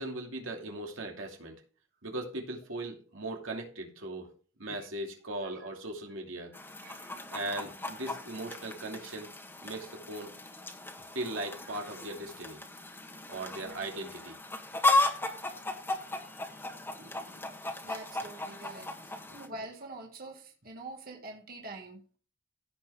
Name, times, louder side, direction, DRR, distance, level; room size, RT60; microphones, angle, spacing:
voice 1, 0.0-1.6 2.0-4.3 4.6-6.6 7.3-9.3 9.6-10.3 11.1-12.6 13.3-14.4 16.9-17.3, right 2 dB, 80° right, 1 dB, 2.6 m, -39 dB
Chicken rooster, 6.5-19.5, left 2 dB, 10° left, 1.3 m, -35 dB
voice 2, 6.8-7.2 13.6-13.9 15.9-22.2, right 2 dB, 50° right, 1 dB, 2.0 m, -47 dB
16.0 x 5.5 x 3.6 m, 0.38 s
head